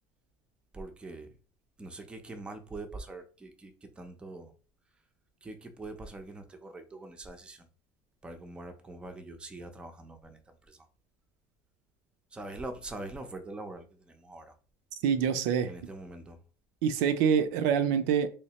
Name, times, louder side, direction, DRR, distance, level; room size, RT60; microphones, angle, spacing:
voice 1, 0.7-1.3 1.8-4.5 5.4-7.7 8.2-10.9 12.3-14.5 15.7-16.4, right 2 dB, 10° right, 0.5 m, -43 dB
voice 2, 15.0-15.7 16.8-18.3, right 7 dB, 75° right, 0.5 m, -25 dB
3.1 x 3.1 x 2.9 m
cardioid pair, 145°, 9 cm